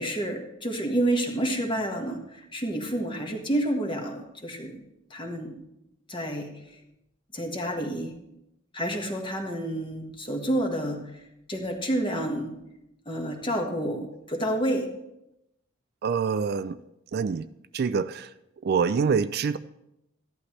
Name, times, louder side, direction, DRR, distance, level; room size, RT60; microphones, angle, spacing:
voice 1, 0.0-4.8 5.1-5.6 6.1-6.5 7.3-8.1 8.7-11.0 11.5-12.5 13.0-14.9, right 1 dB, 25° left, 2 dB, 1.5 m, -29 dB
voice 2, 16.0-16.8 17.1-17.5 17.7-18.3 18.6-19.6, right 5 dB, 50° right, 14 dB, 0.3 m, -25 dB
15.0 x 11.5 x 3.2 m, 0.86 s
head